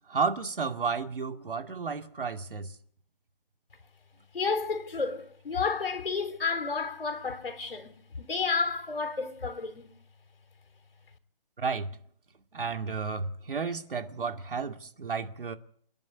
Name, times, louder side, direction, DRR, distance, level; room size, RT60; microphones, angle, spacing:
voice 1, 0.1-2.7 11.6-11.9 12.5-15.6, right 5 dB, 65° right, 2.3 m, -32 dB
voice 2, 4.3-9.9, left 4 dB, 70° left, 3.7 m, -31 dB
28.0 x 10.5 x 9.7 m
hypercardioid pair, 170°, 29 cm